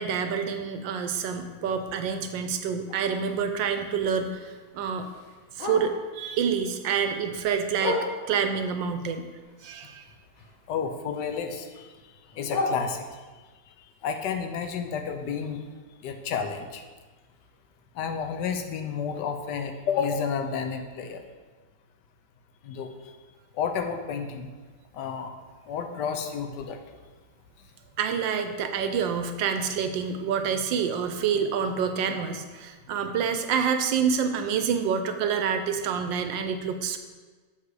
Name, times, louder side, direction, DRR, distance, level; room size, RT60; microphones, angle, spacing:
voice 1, 0.0-5.1 5.6-9.3 9.6-10.0 28.0-37.0, right 6 dB, 75° right, 7 dB, 1.3 m, -27 dB
Bark, 3.0-6.2 6.6-8.5 9.0-10.8 11.1-13.4 13.9-17.8 18.1-18.2 18.5-18.9 19.3-19.4 19.8-19.9 20.4-20.5, left 2 dB, 90° left, 2.0 m, -37 dB
voice 2, 10.7-11.9 12.4-13.0 14.0-15.6 16.0-16.8 17.9-21.2 22.6-23.1 23.5-24.5 24.9-25.3 25.7-26.8, left 6 dB, 70° left, 6 dB, 1.2 m, -31 dB
7.4 x 6.0 x 4.7 m, 1.4 s
omnidirectional pair, 2.1 m